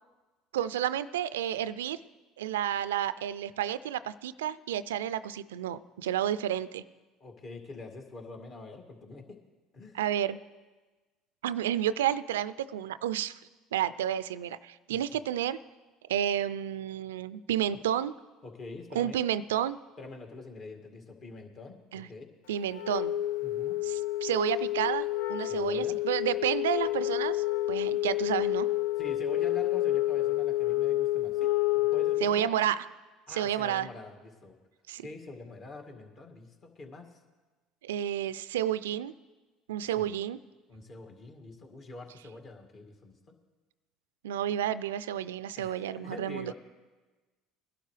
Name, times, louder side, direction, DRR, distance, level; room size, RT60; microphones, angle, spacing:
voice 1, 0.5-2.0 2.4-6.8 9.9-10.4 11.4-13.4 13.7-15.6 16.1-18.1 18.9-19.8 21.9-22.1 22.5-23.1 23.8-28.7 32.2-32.8 33.3-33.9 34.9-35.1 37.8-39.1 39.7-40.4 44.2-46.5, right 11 dB, 85° right, 16 dB, 0.3 m, -31 dB
voice 2, 7.2-9.4 9.7-10.0 14.9-15.0 18.4-19.2 20.0-22.3 23.4-23.8 25.5-26.0 29.0-32.5 33.3-34.6 35.0-37.1 40.0-40.1 40.7-43.4 45.6-46.5, left 3 dB, 45° left, 3 dB, 2.2 m, -45 dB
Wind instrument woodwind instrument, 22.7-32.5, left 14 dB, 75° left, 0.4 m, -29 dB
20.5 x 11.5 x 3.3 m, 1.3 s
hypercardioid pair, 75°, 0 cm